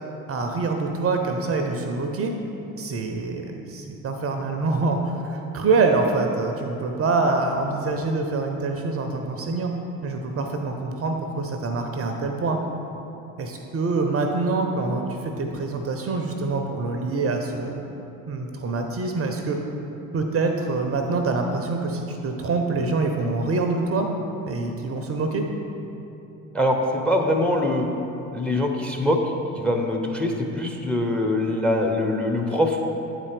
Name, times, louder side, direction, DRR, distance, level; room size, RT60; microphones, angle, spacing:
voice 1, 0.3-2.3 2.8-9.7 10.0-12.6 13.4-17.8 18.3-19.6 20.1-24.1 24.5-25.4, right 3 dB, 35° right, 4 dB, 0.6 m, -25 dB
voice 2, 26.5-27.9 28.3-29.2 29.6-32.8, left 1 dB, 5° left, 3 dB, 0.7 m, -23 dB
8.7 x 4.2 x 5.0 m, 3.0 s
figure-of-eight pair, 55°, 43 cm